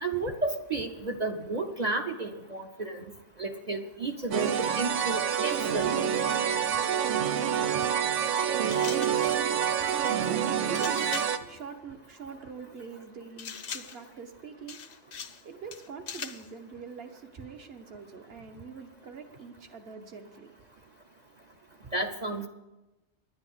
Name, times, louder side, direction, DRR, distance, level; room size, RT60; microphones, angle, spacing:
voice 1, 0.0-3.0 3.4-6.0 21.9-22.5, right 3 dB, 40° right, 0.8 m, -32 dB
sound 1, 4.3-11.4, right 8 dB, 85° right, 1.1 m, -27 dB
sound 2, 8.7-9.5 10.7-11.4 13.4-14.1 14.7-15.4 15.7-16.5, left 6 dB, 55° left, 0.9 m, -40 dB
voice 2, 9.1-20.7, right 5 dB, 60° right, 1.3 m, -44 dB
10.5 x 9.6 x 8.0 m
omnidirectional pair, 1.2 m